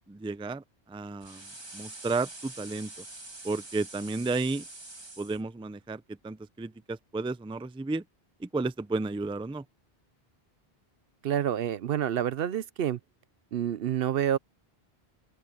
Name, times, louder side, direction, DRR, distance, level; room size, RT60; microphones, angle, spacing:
voice 1, 0.1-3.0 3.4-4.6 5.2-8.0 8.4-9.6, right 3 dB, 10° right, 0.3 m, -33 dB
sound 1, 1.2-5.4, right 2 dB, 25° right, 1.6 m, -45 dB
voice 2, 11.2-13.0 13.5-14.4, right 10 dB, 70° right, 0.8 m, -28 dB
open air
omnidirectional pair, 1.0 m